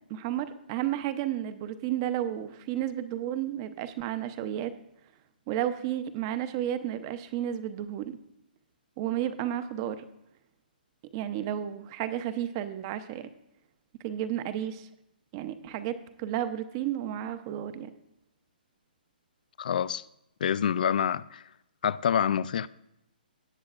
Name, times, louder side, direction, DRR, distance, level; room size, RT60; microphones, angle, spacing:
voice 1, 0.1-4.7 5.5-8.2 9.0-10.0 11.1-13.3 14.0-14.9 15.3-17.9, right 11 dB, 30° right, 0.6 m, -32 dB
voice 2, 19.6-20.0 20.4-21.4 21.8-22.7, left 8 dB, 60° left, 0.4 m, -27 dB
18.5 x 7.5 x 2.4 m
hypercardioid pair, 155°, 5 cm